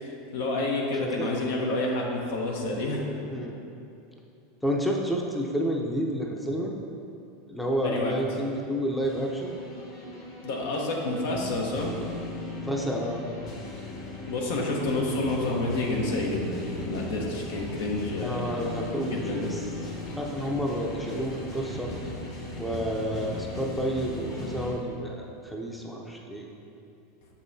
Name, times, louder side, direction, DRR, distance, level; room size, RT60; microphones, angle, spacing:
voice 1, 0.0-3.1 7.8-8.1 10.4-11.9 14.3-18.5 19.1-19.5, left 2 dB, 75° left, -1 dB, 1.0 m, -29 dB
voice 2, 1.0-1.3 3.2-3.6 4.6-6.7 7.5-9.6 12.6-13.2 18.2-19.6 20.1-21.9 22.6-26.5, equal, ahead, -1 dB, 0.6 m, -30 dB
sound 1, 9.0-24.7, left 2 dB, 50° left, 1.4 m, -38 dB
6.7 x 5.4 x 2.7 m, 2.7 s
supercardioid pair, 120°, 0 cm